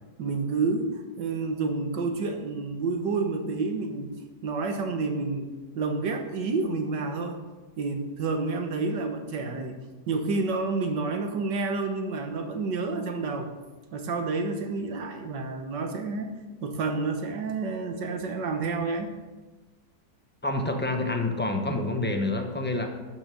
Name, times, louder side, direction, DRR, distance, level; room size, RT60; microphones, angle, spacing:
voice 1, 0.2-4.1 4.4-7.4 7.8-9.8 10.1-13.5 13.9-16.3 16.6-19.2, right 3 dB, 85° right, 5 dB, 1.8 m, -29 dB
voice 2, 20.4-22.9, left 2 dB, 10° left, 4 dB, 0.8 m, -27 dB
12.0 x 6.3 x 6.3 m, 1.3 s
omnidirectional pair, 1.8 m